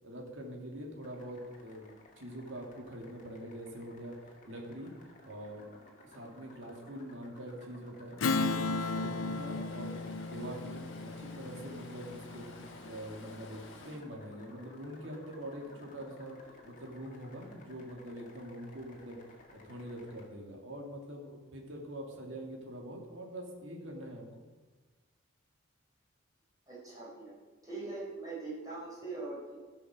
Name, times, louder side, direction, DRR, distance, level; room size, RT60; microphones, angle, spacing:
voice 1, 0.0-1.9 2.2-4.2 4.5-4.9 5.2-5.7 6.1-9.9 10.3-10.9 11.2-12.5 12.8-16.4 16.6-19.2 19.5-24.4, equal, 65° right, 1 dB, 2.2 m, -44 dB
sound 1, 1.0-20.3, left 1 dB, 40° left, 1.8 m, -57 dB
Strum, 8.2-13.1, left 3 dB, 80° left, 0.6 m, -35 dB
Stream, 8.7-14.0, left 2 dB, 60° left, 1.5 m, -51 dB
voice 2, 26.7-27.3 27.6-29.5, right 3 dB, 15° right, -7 dB, 4.5 m, -41 dB
15.0 x 6.2 x 6.2 m, 1.3 s
head